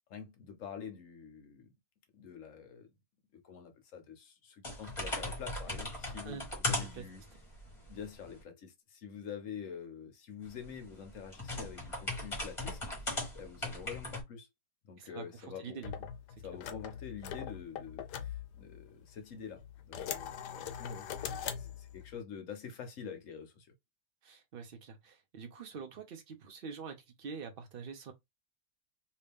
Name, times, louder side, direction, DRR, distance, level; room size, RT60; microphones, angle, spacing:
voice 1, 0.1-1.7 2.1-2.9 3.3-7.2 7.9-14.5 14.9-15.8 16.4-23.7, left 7 dB, 60° left, 1.0 m, -47 dB
sound 1, 4.6-8.4 10.5-14.2, left 2 dB, 20° left, 1.2 m, -38 dB
voice 2, 15.0-15.9 24.2-28.1, right 6 dB, 75° right, 0.5 m, -45 dB
sound 2, 15.8-19.1 19.6-22.1, left 9 dB, 80° left, 1.2 m, -42 dB
2.9 x 2.7 x 3.4 m
omnidirectional pair, 1.8 m